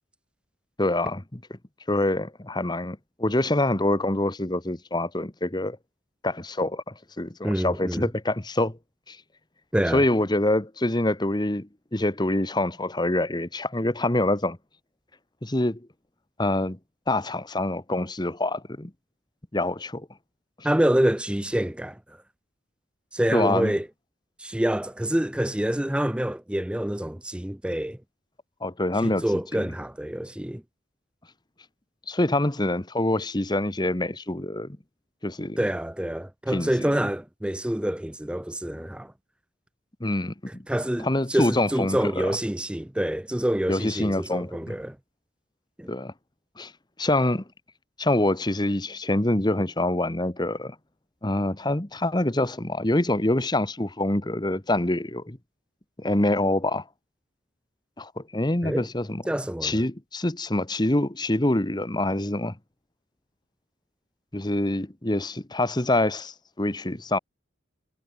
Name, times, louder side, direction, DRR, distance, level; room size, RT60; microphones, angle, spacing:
voice 1, 0.8-1.4 1.9-5.8 6.2-8.8 9.1-9.2 9.9-14.6 15.4-15.8 16.4-16.8 17.1-18.9 19.5-20.1 20.6-20.7 23.3-23.7 28.6-29.6 32.1-34.8 35.2-35.6 36.5-36.9 40.0-40.6 41.0-42.4 43.7-44.8 45.9-46.1 46.6-46.7 47.0-47.4 48.0-50.8 51.2-55.4 56.0-56.8 58.0-59.2 59.6-62.6 64.3-67.2, left 1 dB, 20° left, 1.2 m, -25 dB
voice 2, 7.4-8.1 9.7-10.0 20.6-22.0 23.1-23.9 24.4-28.0 29.0-30.6 35.6-39.1 40.7-45.0 45.8-45.9 58.6-58.9 59.3-59.8, right 1 dB, 5° right, 0.4 m, -26 dB
head